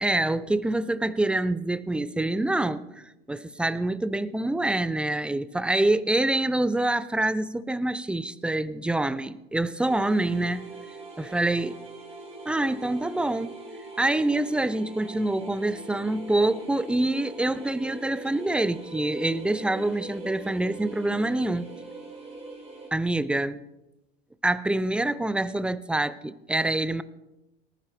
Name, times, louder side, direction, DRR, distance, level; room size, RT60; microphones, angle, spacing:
voice 1, 0.0-10.7 11.2-11.8 12.5-13.5 14.0-21.7 22.9-23.6 24.4-27.0, right 2 dB, 5° right, 0.5 m, -26 dB
sound 1, 9.8-22.9, right 2 dB, 20° right, 4.0 m, -42 dB
19.0 x 10.0 x 3.3 m
hypercardioid pair, 85°, 29 cm